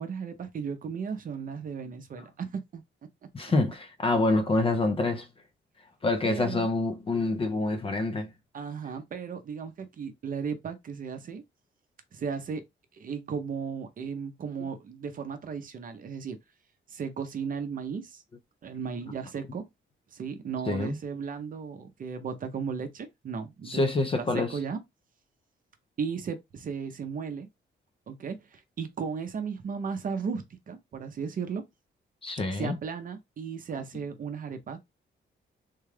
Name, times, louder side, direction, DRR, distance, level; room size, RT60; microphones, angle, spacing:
voice 1, 0.0-2.8 3.4-3.5 6.2-6.7 8.5-11.4 12.1-12.6 12.9-16.4 16.9-18.2 18.6-19.7 20.1-23.9 24.2-24.8 26.0-27.5 28.1-31.7 32.5-34.8, right 6 dB, 45° right, 0.6 m, -35 dB
voice 2, 3.3-5.3 6.0-8.3 20.7-21.0 23.7-24.6 32.2-32.8, left 2 dB, 30° left, 0.4 m, -26 dB
3.6 x 2.3 x 3.2 m
wide cardioid pair, 160°, 20 cm